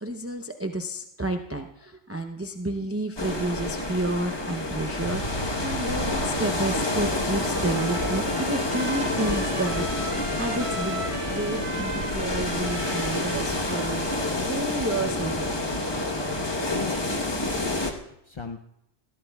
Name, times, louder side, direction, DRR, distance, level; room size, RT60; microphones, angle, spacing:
voice 1, 0.0-15.6, right 2 dB, 15° right, 5 dB, 0.5 m, -31 dB
sound 1, 3.2-17.9, left 2 dB, 25° left, 1.0 m, -28 dB
sound 2, 5.0-16.9, right 1 dB, 65° left, 5.6 m, -38 dB
Trumpet, 6.8-14.4, right 1 dB, 45° right, 1.7 m, -37 dB
voice 2, 16.7-18.6, left 5 dB, 40° left, 4 dB, 0.4 m, -39 dB
21.0 x 15.0 x 2.3 m, 0.82 s
omnidirectional pair, 1.2 m